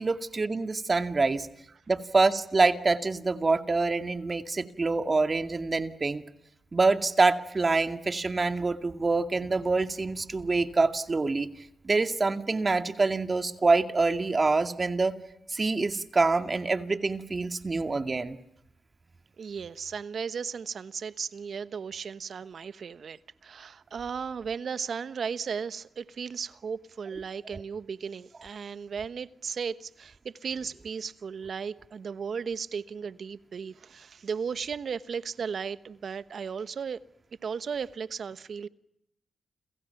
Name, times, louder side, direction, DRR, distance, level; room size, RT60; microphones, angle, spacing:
voice 1, 0.0-1.5 1.9-6.2 6.7-11.5 11.8-15.1 15.5-18.4, right 3 dB, 40° right, 2.2 m, -26 dB
voice 2, 19.4-37.0 37.4-38.7, right 6 dB, 65° right, 1.1 m, -35 dB
30.0 x 28.5 x 5.9 m
supercardioid pair, 45°, 0 cm